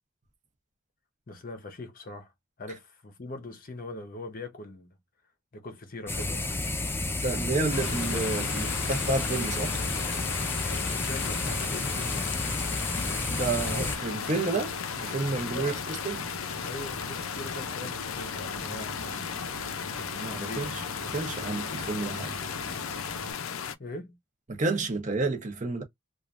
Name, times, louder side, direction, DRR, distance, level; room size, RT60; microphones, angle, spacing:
voice 1, 1.3-2.3 2.6-5.0 5.5-6.8 7.2-7.4 10.6-12.4 15.5-15.8 16.6-19.5 20.1-20.7 23.8-24.2, left 2 dB, 40° left, 0.7 m, -42 dB
sound 1, 6.1-14.0, left 2 dB, 10° left, 0.4 m, -31 dB
voice 2, 7.2-9.7 13.3-15.7 16.0-16.3 20.2-20.7 21.1-22.3 24.5-25.8, right 3 dB, 35° right, 0.8 m, -30 dB
sound 2, 7.7-23.7, left 7 dB, 75° left, 0.5 m, -35 dB
sound 3, 11.3-11.4 11.8-11.9 13.8-23.3, right 3 dB, 80° right, 0.9 m, -44 dB
3.1 x 2.4 x 2.4 m
head